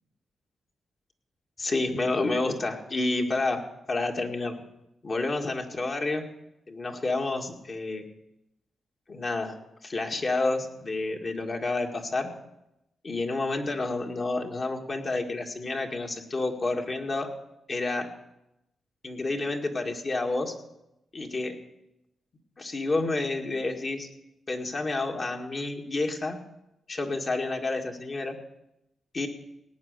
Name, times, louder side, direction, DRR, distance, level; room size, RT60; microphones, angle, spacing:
voice 1, 1.6-4.5 5.0-6.2 6.7-8.0 9.1-9.6 9.8-12.3 13.0-17.3 17.7-18.1 19.0-20.5 21.1-21.6 22.6-24.1 24.5-26.4 26.9-28.4 29.1-29.3, left 2 dB, 40° left, 2 dB, 2.0 m, -29 dB
18.5 x 9.2 x 6.7 m, 0.88 s
cardioid pair, 100°, 0 cm